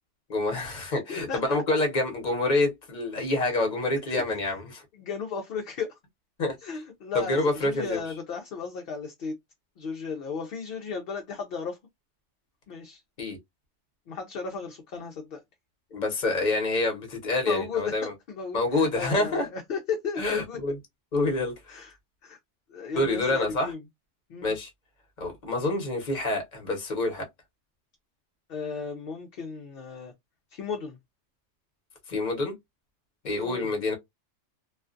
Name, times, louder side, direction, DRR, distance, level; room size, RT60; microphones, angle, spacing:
voice 1, 0.3-4.8 6.4-6.6 7.1-8.0 13.2-13.4 15.9-18.0 18.5-19.5 20.2-20.8 21.1-21.8 23.0-23.7 24.4-24.7 25.2-27.2 32.1-32.5 33.2-33.9, left 2 dB, 40° left, 0.9 m, -27 dB
voice 2, 0.9-1.6 4.1-4.2 5.0-6.0 6.6-9.4 9.8-11.8 12.7-13.0 14.1-15.4 17.5-20.6 21.7-21.9 22.2-22.4 22.7-23.8 24.3-24.5 28.5-30.1 30.5-31.0 33.4-33.7, left 5 dB, 60° left, 0.7 m, -35 dB
2.4 x 2.2 x 2.4 m
omnidirectional pair, 1.3 m